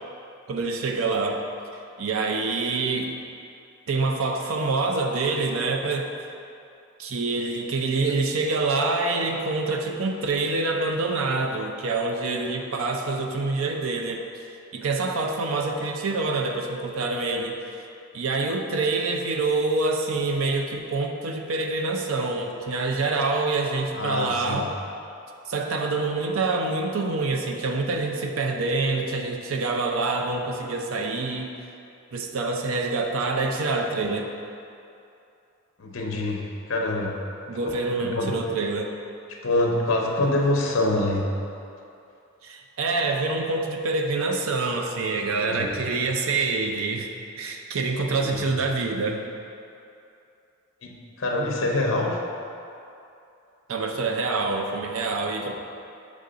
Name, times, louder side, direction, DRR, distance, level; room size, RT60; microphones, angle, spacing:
voice 1, 0.5-1.4 2.0-3.1 3.9-6.1 7.0-14.2 14.7-17.8 18.1-24.7 25.5-31.5 32.1-34.3 37.5-38.9 42.4-47.1 47.4-49.2 53.7-55.5, right 3 dB, 75° right, 3 dB, 0.5 m, -26 dB
voice 2, 23.9-24.6 35.8-37.2 38.0-38.4 39.4-41.3 45.4-45.7 48.2-48.4 50.8-52.2, left 2 dB, 60° left, 0 dB, 0.7 m, -25 dB
6.7 x 3.6 x 3.8 m, 2.7 s
head